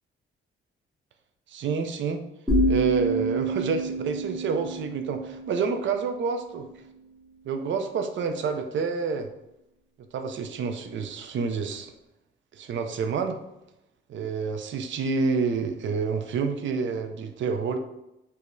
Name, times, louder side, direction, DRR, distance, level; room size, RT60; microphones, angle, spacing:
voice 1, 1.5-2.2 2.7-6.7 7.5-9.3 10.1-11.9 12.6-13.4 14.1-17.8, right 5 dB, 65° right, 7 dB, 0.4 m, -28 dB
sound 1, 2.5-6.4, right 1 dB, ahead, 0.9 m, -28 dB
4.6 x 2.1 x 2.6 m, 0.88 s
cardioid pair, 125°, 21 cm